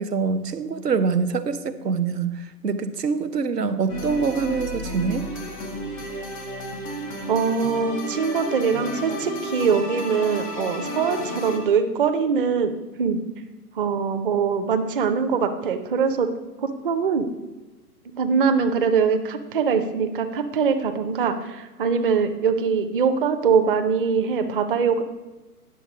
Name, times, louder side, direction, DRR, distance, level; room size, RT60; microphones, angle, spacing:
voice 1, 0.0-5.3, right 5 dB, 90° right, 12 dB, 0.9 m, -25 dB
sound 1, 3.9-11.6, equal, 5° left, 0.4 m, -32 dB
voice 2, 7.3-12.7 13.0-13.2 13.8-16.3 16.6-17.3 18.1-25.0, right 6 dB, 35° right, 8 dB, 0.7 m, -22 dB
10.0 x 6.7 x 5.0 m, 1.1 s
hypercardioid pair, 145°, 46 cm